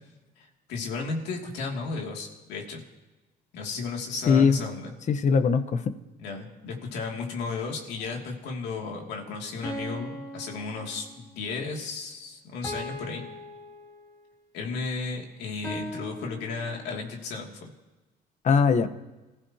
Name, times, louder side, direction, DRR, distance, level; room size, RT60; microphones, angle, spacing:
voice 1, 0.4-2.8 3.5-4.9 6.2-13.2 14.5-17.7, left 4 dB, 85° left, 1 dB, 2.7 m, -34 dB
voice 2, 4.3-4.6 5.1-5.9 18.4-18.9, left 5 dB, 45° left, 11 dB, 1.1 m, -21 dB
sound 1, 8.0-8.2 9.6-11.4 12.6-14.3 15.6-17.1, equal, 20° left, 2.0 m, -40 dB
27.0 x 15.0 x 2.9 m, 1.1 s
cardioid pair, 110°, 17 cm